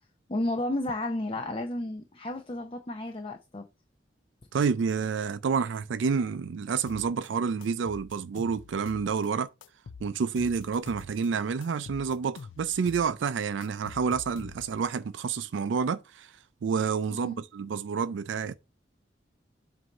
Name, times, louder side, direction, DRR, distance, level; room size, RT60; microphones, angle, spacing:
voice 1, 0.3-3.6 17.2-17.4, left 1 dB, 30° left, 0.6 m, -32 dB
voice 2, 4.5-9.5 10.0-18.5, right 5 dB, 80° right, 0.4 m, -29 dB
sound 1, 6.9-7.3 7.6-9.3 9.6-11.3 11.6-13.1 13.4-14.9, left 5 dB, 90° left, 0.4 m, -46 dB
7.6 x 2.7 x 5.3 m
head